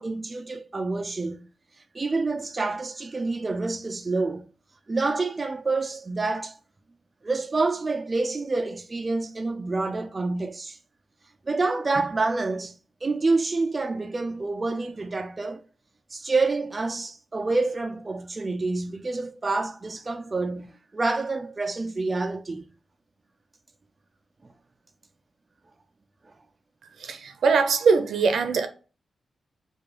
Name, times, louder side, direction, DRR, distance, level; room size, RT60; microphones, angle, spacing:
voice 1, 0.0-1.5 1.9-4.5 4.9-6.6 7.2-10.8 11.5-12.7 13.0-15.6 16.1-22.6, right 3 dB, 30° right, 0.4 m, -27 dB
voice 2, 27.0-28.7, right 5 dB, 80° right, 0.6 m, -22 dB
4.7 x 2.4 x 2.9 m
wide cardioid pair, 130°, 0 cm